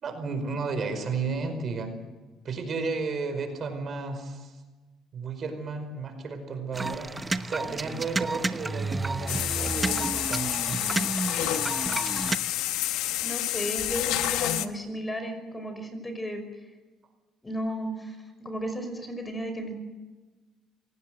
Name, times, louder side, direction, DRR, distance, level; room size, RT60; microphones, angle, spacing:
voice 1, 0.0-1.9 2.4-4.6 5.1-7.1 7.5-10.8, right 4 dB, 45° right, 6 dB, 5.0 m, -33 dB
sound 1, 6.7-12.4, right 3 dB, 15° right, 1.0 m, -31 dB
sound 2, 9.3-14.7, left 14 dB, 90° left, 1.1 m, -29 dB
voice 2, 12.9-16.5 17.4-19.7, equal, 15° left, 7 dB, 5.5 m, -34 dB
26.5 x 18.0 x 7.8 m, 1.2 s
cardioid pair, 100°, 0 cm